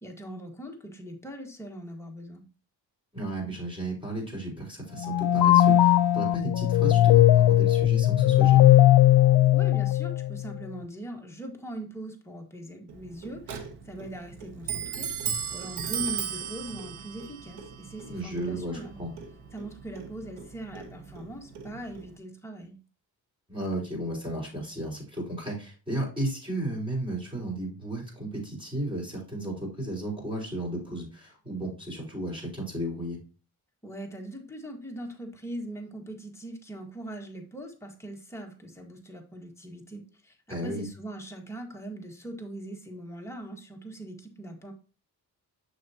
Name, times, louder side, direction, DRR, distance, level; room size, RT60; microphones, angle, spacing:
voice 1, 0.0-2.4 9.5-15.1 15.5-19.0 19.5-22.8 33.8-44.7, right 1 dB, 5° left, 1 dB, 1.6 m, -41 dB
voice 2, 3.1-8.7 18.1-19.1 23.5-33.2 40.5-40.9, right 1 dB, 15° right, -3 dB, 4.2 m, -34 dB
sound 1, 5.0-10.4, left 13 dB, 75° left, 0.6 m, -19 dB
Clock, 12.9-22.2, right 7 dB, 85° right, 1.2 m, -37 dB
6.8 x 6.5 x 2.8 m, 0.35 s
cardioid pair, 115°, 39 cm